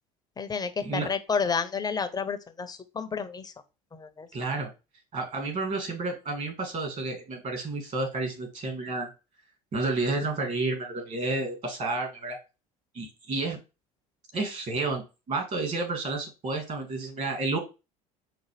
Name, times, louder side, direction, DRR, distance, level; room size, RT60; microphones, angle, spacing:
voice 1, 0.4-3.5 3.9-4.3, left 5 dB, 20° left, 10 dB, 0.6 m, -30 dB
voice 2, 4.3-4.7 5.1-9.1 9.7-12.4 12.9-13.6 14.3-17.6, right 3 dB, 40° right, 3 dB, 2.1 m, -30 dB
5.9 x 2.5 x 3.2 m, 0.29 s
hypercardioid pair, 75°, 19 cm